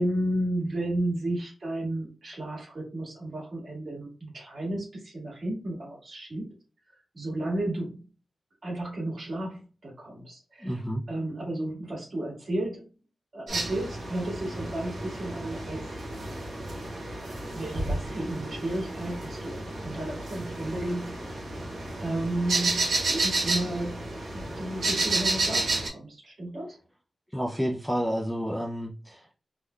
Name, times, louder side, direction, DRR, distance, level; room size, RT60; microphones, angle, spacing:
voice 1, 0.0-6.5 7.1-8.1 8.6-10.8 11.1-12.9 13.3-15.9 17.5-21.5 22.0-26.8, right 1 dB, 50° right, -3 dB, 1.8 m, -33 dB
voice 2, 10.6-11.0 27.3-29.4, equal, 5° left, 0 dB, 0.4 m, -30 dB
sound 1, 13.5-25.9, right 2 dB, 75° right, 1.3 m, -31 dB
3.6 x 2.2 x 3.1 m, 0.36 s
wide cardioid pair, 145°, 0 cm